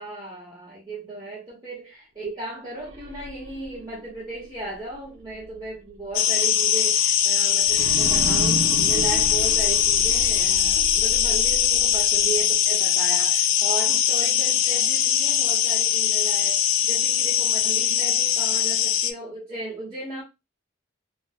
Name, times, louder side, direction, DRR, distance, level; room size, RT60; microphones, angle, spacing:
voice 1, 0.0-20.2, right 2 dB, 25° right, 0.8 m, -36 dB
sound 1, 2.7-5.7 6.1-6.2 7.6-12.7, right 1 dB, 65° right, 0.5 m, -33 dB
sound 2, 6.1-19.1, left 10 dB, 90° left, 0.3 m, -21 dB
2.5 x 2.0 x 2.6 m
head